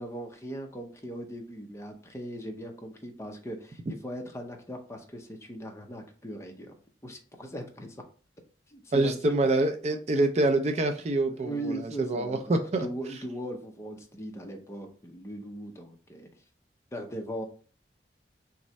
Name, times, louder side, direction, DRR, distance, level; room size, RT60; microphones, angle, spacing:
voice 1, 0.0-8.0 8.7-9.4 11.3-16.3 16.9-17.4, right 1 dB, 15° left, 3 dB, 0.6 m, -39 dB
voice 2, 8.9-12.9, right 2 dB, 35° right, 7 dB, 0.4 m, -26 dB
3.6 x 3.1 x 4.1 m, 0.40 s
head